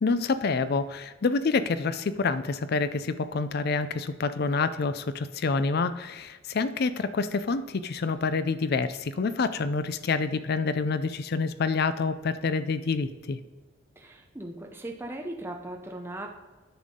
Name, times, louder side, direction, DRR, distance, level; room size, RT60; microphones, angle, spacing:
voice 1, 0.0-13.4, left 4 dB, 50° left, 13 dB, 0.4 m, -27 dB
voice 2, 14.0-16.3, right 1 dB, 10° right, 2 dB, 0.6 m, -38 dB
9.9 x 5.7 x 3.7 m, 1.3 s
head